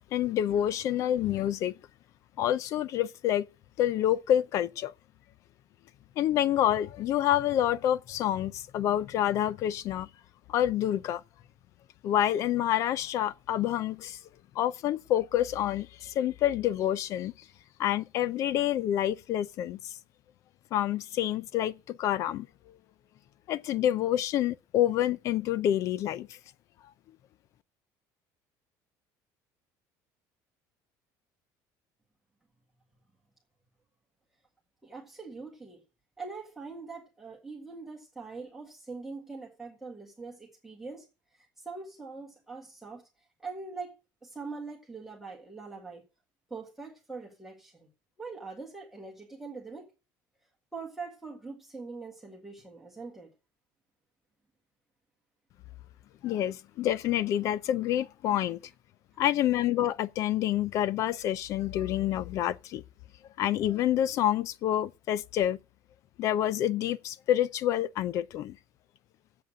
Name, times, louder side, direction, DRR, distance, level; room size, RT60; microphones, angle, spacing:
voice 1, 0.0-1.7 2.4-3.5 3.8-4.9 6.2-10.1 10.5-11.2 12.0-14.2 14.6-17.3 17.8-19.8 20.7-22.5 23.5-26.3 56.2-58.6 59.2-62.8 63.4-65.6 66.2-68.6, left 11 dB, 45° left, 0.5 m, -28 dB
voice 2, 34.8-35.8 36.2-46.0 46.5-47.9 48.2-49.9 50.7-53.3 59.1-59.2, right 4 dB, 5° right, 1.7 m, -43 dB
8.1 x 7.8 x 8.6 m
cardioid pair, 180°, 8 cm